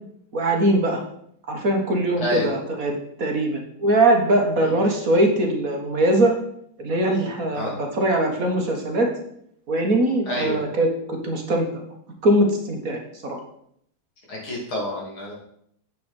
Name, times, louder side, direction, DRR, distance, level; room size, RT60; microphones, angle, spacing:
voice 1, 0.3-1.0 1.5-6.4 6.8-9.1 9.7-11.7 12.2-13.4, right 1 dB, 45° right, 2 dB, 1.7 m, -21 dB
voice 2, 2.2-2.5 4.6-4.7 7.5-7.8 10.3-10.6 14.3-15.3, left 1 dB, 90° left, -3 dB, 3.9 m, -28 dB
8.2 x 8.0 x 4.4 m, 0.69 s
omnidirectional pair, 2.2 m